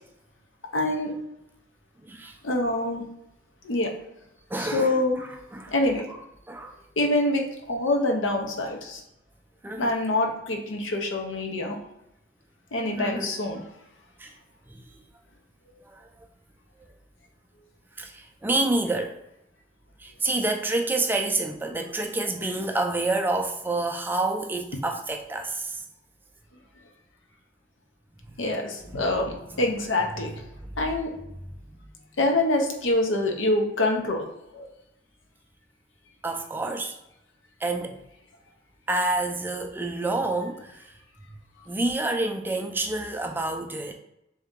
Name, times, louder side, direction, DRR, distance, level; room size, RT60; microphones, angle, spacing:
voice 1, 0.7-1.1 2.4-3.1 3.6-4.0 4.6-5.2 5.7-6.1 7.0-9.0 9.8-11.8 12.7-13.6 28.4-30.3 30.8-31.1 32.2-34.7, left 2 dB, 80° left, 3 dB, 0.7 m, -25 dB
voice 2, 2.0-2.4 4.5-5.7 6.1-6.2 6.5-6.8 9.6-10.0 13.0-13.3 14.2-14.3 14.7-15.0 15.9-16.3 18.0-19.2 20.0-25.8 28.9-29.1 30.6-30.8 31.4-31.5 36.2-37.0 37.6-38.0 38.9-40.9 41.7-43.9, right 2 dB, 10° right, 4 dB, 0.3 m, -28 dB
3.6 x 2.8 x 3.6 m, 0.84 s
head